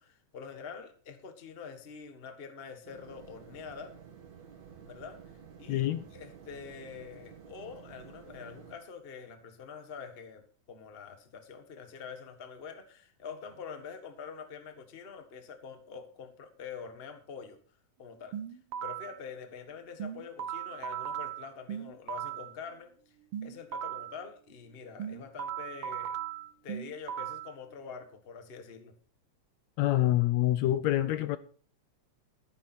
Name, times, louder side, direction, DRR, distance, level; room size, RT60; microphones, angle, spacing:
voice 1, 0.0-4.0 4.8-5.2 5.6-17.6 18.0-18.4 18.8-22.9 23.4-26.2 26.6-29.0, left 6 dB, 30° left, 1.1 m, -45 dB
sound 1, 2.8-8.8, right 7 dB, 65° right, 3.5 m, -52 dB
voice 2, 5.7-6.0 29.8-31.4, left 14 dB, 75° left, 1.8 m, -26 dB
sound 2, 18.3-19.2 20.0-22.5 23.3-24.2 25.0-27.5, right 10 dB, 85° right, 1.2 m, -38 dB
13.0 x 11.5 x 4.3 m
omnidirectional pair, 3.4 m